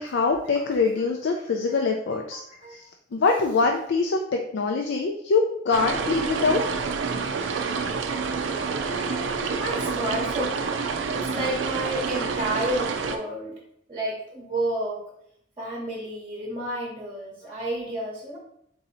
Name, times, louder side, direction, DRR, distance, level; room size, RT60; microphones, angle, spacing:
voice 1, 0.0-2.4 2.7-2.8 3.1-6.6 7.4-7.7, left 4 dB, 65° left, 3 dB, 0.4 m, -24 dB
voice 2, 2.1-2.8 8.8-10.6 11.1-13.5 13.9-15.0 15.6-18.4, right 1 dB, 30° right, -4 dB, 0.8 m, -31 dB
sound 1, 5.7-13.2, right 5 dB, 80° right, 0.5 m, -28 dB
3.9 x 2.7 x 4.1 m, 0.72 s
head